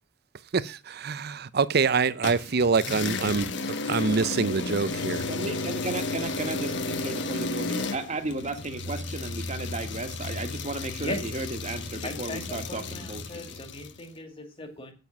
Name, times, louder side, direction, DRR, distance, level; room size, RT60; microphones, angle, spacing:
voice 1, 0.5-5.3, right 4 dB, 55° right, 0.6 m, -25 dB
sound 1, 2.2-14.0, left 3 dB, 65° left, 1.4 m, -33 dB
voice 2, 5.3-13.6, right 2 dB, 40° right, 1.6 m, -34 dB
voice 3, 12.0-14.9, left 2 dB, 30° left, 2.5 m, -38 dB
9.3 x 9.1 x 6.0 m
head